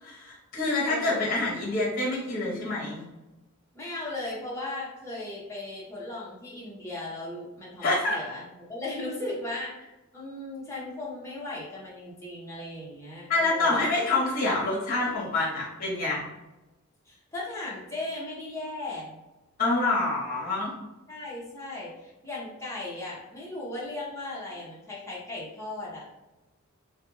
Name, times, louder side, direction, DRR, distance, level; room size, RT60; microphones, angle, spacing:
voice 1, 0.0-3.0 7.8-8.2 13.3-16.2 19.6-20.7, left 2 dB, 45° left, -4 dB, 0.9 m, -26 dB
voice 2, 0.8-1.4 3.7-13.9 17.1-19.2 21.1-26.1, left 2 dB, 15° left, -7 dB, 0.8 m, -37 dB
2.4 x 2.2 x 3.1 m, 1.0 s
head